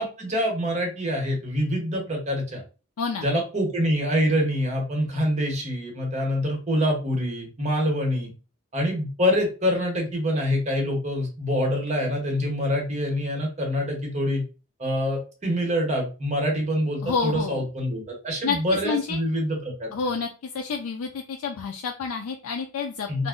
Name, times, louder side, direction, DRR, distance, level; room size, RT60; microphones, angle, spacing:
voice 1, 0.0-2.6 3.2-8.3 8.7-14.4 14.8-19.9 23.1-23.3, equal, 30° right, 1 dB, 0.9 m, -25 dB
voice 2, 17.0-17.7 18.4-19.2 19.9-23.3, left 5 dB, 70° left, 3 dB, 0.4 m, -29 dB
2.5 x 2.0 x 3.6 m, 0.33 s
head